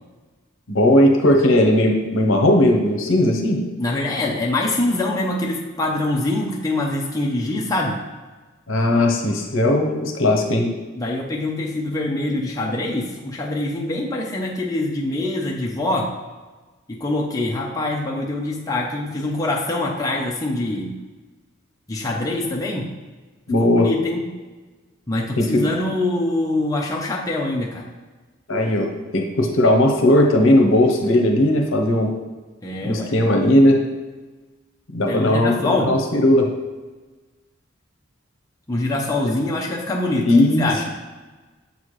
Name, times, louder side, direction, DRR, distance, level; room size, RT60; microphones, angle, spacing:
voice 1, 0.7-3.6 8.7-10.7 23.5-23.9 25.4-25.6 28.5-32.1 32.8-33.8 34.9-36.5 40.2-40.7, left 1 dB, 70° left, 2 dB, 0.8 m, -17 dB
voice 2, 3.8-8.0 10.9-16.1 16.9-20.9 21.9-22.9 23.8-24.2 25.1-27.8 32.6-33.1 35.1-35.9 38.7-40.3 40.6-40.9, left 2 dB, 15° left, -3 dB, 0.6 m, -24 dB
7.1 x 4.1 x 3.2 m, 1.3 s
head